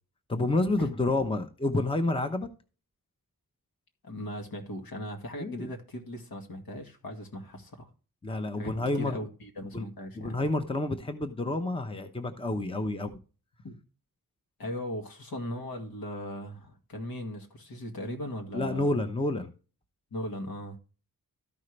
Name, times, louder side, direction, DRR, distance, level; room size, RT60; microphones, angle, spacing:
voice 1, 0.3-2.5 5.4-5.7 8.2-9.2 9.7-9.9 10.1-13.2 18.5-19.5, left 2 dB, 15° left, 0.9 m, -29 dB
voice 2, 4.0-7.9 8.6-10.4 13.6-13.8 14.6-19.0 20.1-20.8, equal, 75° left, 2.0 m, -38 dB
13.5 x 5.6 x 3.2 m
wide cardioid pair, 115°, 36 cm